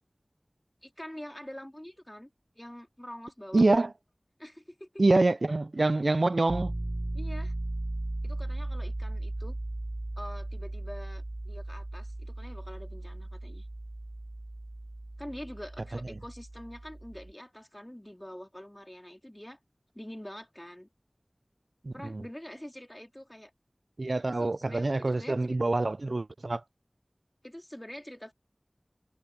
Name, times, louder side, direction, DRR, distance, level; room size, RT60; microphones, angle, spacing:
voice 1, 0.8-2.3 2.6-3.7 4.4-5.0 7.1-7.5 8.2-9.6 10.2-13.7 15.2-19.6 19.9-20.9 21.9-23.5 24.3-25.6 27.4-28.3, equal, 15° left, 3.8 m, -45 dB
voice 2, 3.5-3.9 5.0-6.7 21.8-22.2 24.0-26.6, right 2 dB, 75° right, 0.3 m, -26 dB
Piano, 6.5-17.3, right 1 dB, 50° right, 4.6 m, -37 dB
wide cardioid pair, 40°, 0 cm